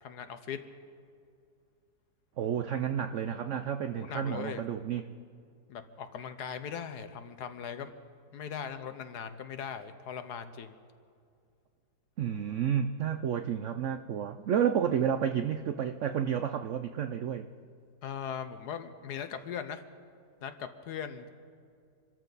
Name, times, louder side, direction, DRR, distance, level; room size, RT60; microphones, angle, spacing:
voice 1, 0.0-0.6 3.9-4.6 5.7-7.9 8.3-10.8 18.0-19.8 20.4-21.3, left 7 dB, 70° left, 10 dB, 1.4 m, -39 dB
voice 2, 2.4-5.0 12.2-17.5, right 8 dB, 75° right, 8 dB, 0.7 m, -31 dB
26.0 x 13.5 x 4.0 m, 2.4 s
omnidirectional pair, 1.9 m